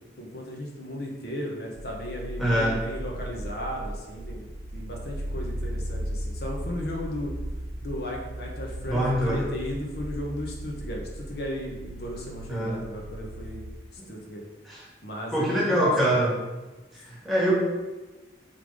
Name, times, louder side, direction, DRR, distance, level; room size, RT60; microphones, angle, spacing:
voice 1, 0.0-7.3 7.8-13.6 13.9-14.4 15.0-16.2, left 1 dB, 60° left, -1 dB, 1.1 m, -36 dB
sound 1, 1.7-13.7, right 1 dB, 65° right, 0.6 m, -36 dB
voice 2, 2.4-2.8 8.9-9.4 12.5-12.8 14.7-14.8 15.3-16.4 17.1-17.5, equal, ahead, -6 dB, 1.6 m, -24 dB
5.6 x 3.8 x 4.8 m, 1.2 s
head